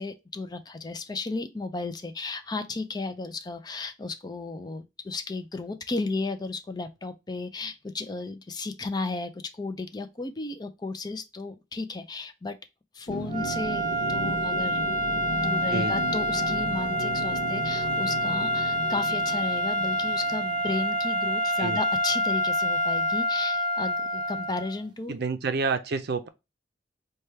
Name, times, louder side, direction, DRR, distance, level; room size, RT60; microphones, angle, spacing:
voice 1, 0.0-12.6 12.9-25.2, left 3 dB, 25° left, 0.4 m, -34 dB
sound 1, 13.1-21.6, left 2 dB, 75° left, 0.5 m, -36 dB
sound 2, 13.3-24.8, equal, 25° right, 0.7 m, -27 dB
voice 2, 25.1-26.3, right 4 dB, 65° right, 0.5 m, -28 dB
4.3 x 2.3 x 3.2 m
head